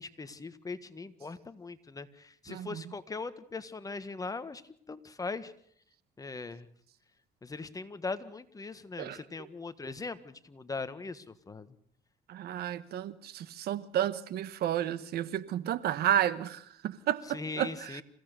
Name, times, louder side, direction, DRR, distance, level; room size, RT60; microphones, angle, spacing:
voice 1, 0.0-4.6 4.9-5.5 6.2-6.7 7.4-11.8 17.3-18.0, left 3 dB, 20° left, 12 dB, 1.6 m, -40 dB
voice 2, 2.5-2.8 9.0-9.2 12.3-18.0, right 11 dB, 70° right, 16 dB, 1.3 m, -32 dB
27.5 x 16.5 x 6.8 m, 0.64 s
cardioid pair, 110°, 17 cm